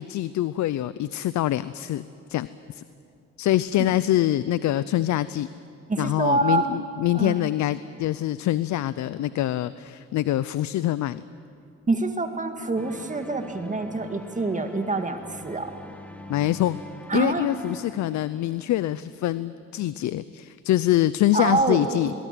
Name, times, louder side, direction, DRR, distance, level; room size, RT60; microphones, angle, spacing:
voice 1, 0.0-2.0 2.3-2.8 3.4-5.5 6.0-11.2 16.3-16.8 17.1-22.1, left 14 dB, 70° left, 16 dB, 0.6 m, -25 dB
voice 2, 5.9-6.8 7.1-7.3 11.9-15.7 17.1-17.6 21.3-22.1, right 3 dB, 25° right, 6 dB, 2.0 m, -26 dB
sound 1, 12.8-19.0, left 1 dB, 5° left, 1.7 m, -43 dB
22.0 x 20.0 x 9.2 m, 2.5 s
cardioid pair, 90°, 30 cm